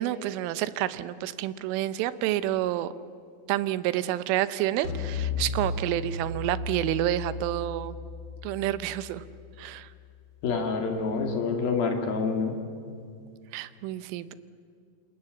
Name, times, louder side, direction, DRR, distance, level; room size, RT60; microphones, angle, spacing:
voice 1, 0.0-2.9 3.5-8.0 8.4-9.2 9.6-9.9 13.5-14.3, right 13 dB, 85° right, 14 dB, 3.4 m, -29 dB
sound 1, 4.8-10.3, left 3 dB, 25° left, 3.6 m, -35 dB
voice 2, 10.4-12.6, left 4 dB, 55° left, 4 dB, 3.7 m, -27 dB
27.0 x 27.0 x 7.8 m, 2.3 s
omnidirectional pair, 5.5 m